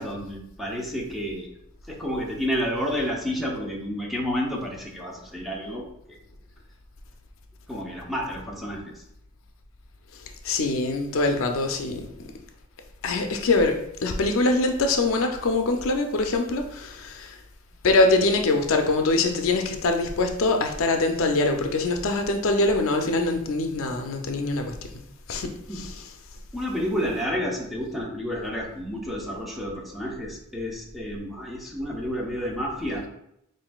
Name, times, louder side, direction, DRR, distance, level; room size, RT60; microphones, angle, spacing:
voice 1, 0.0-1.5 1.9-5.8 7.7-8.9 21.1-21.2 25.7-25.9 26.5-33.0, equal, ahead, -2 dB, 0.7 m, -30 dB
voice 2, 10.4-12.3 13.0-17.4 17.8-25.0 25.3-25.9, left 2 dB, 75° left, 4 dB, 0.5 m, -23 dB
5.7 x 2.6 x 2.3 m, 0.76 s
head